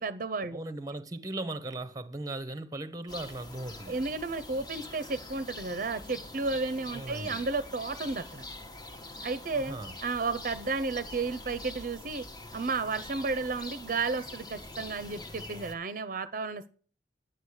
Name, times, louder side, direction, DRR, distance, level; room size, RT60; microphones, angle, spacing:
voice 1, 0.0-0.6 3.9-8.4 9.2-12.2 12.5-16.7, right 3 dB, 50° right, 0.6 m, -33 dB
voice 2, 0.5-4.0 6.9-7.4 9.5-9.9, right 2 dB, 20° right, 0.8 m, -38 dB
sound 1, 3.1-15.7, left 2 dB, 25° left, 1.1 m, -44 dB
10.0 x 9.0 x 6.4 m
head